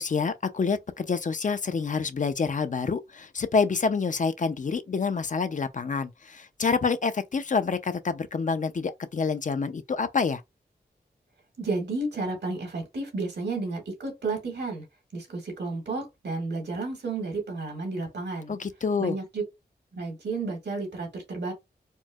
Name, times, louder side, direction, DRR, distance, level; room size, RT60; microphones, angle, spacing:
voice 1, 0.0-10.4 18.5-19.2, left 5 dB, 50° left, 0.4 m, -27 dB
voice 2, 11.6-14.8 15.1-18.5 19.0-19.4 19.9-21.5, right 3 dB, 85° right, 1.7 m, -32 dB
4.4 x 2.0 x 2.3 m
cardioid pair, 50°, 17 cm